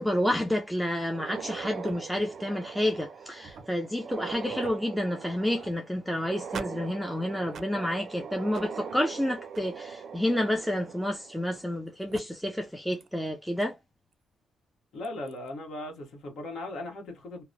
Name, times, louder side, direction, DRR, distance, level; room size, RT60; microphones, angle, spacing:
voice 1, 0.0-13.7, left 1 dB, ahead, 0.4 m, -29 dB
sound 1, 1.0-11.8 12.1-12.2 13.0-13.1 13.6-13.7 15.0-15.3, right 6 dB, 60° right, 0.5 m, -41 dB
voice 2, 14.9-17.4, left 1 dB, 65° left, 1.1 m, -38 dB
2.9 x 2.1 x 2.5 m
cardioid pair, 90°, 0 cm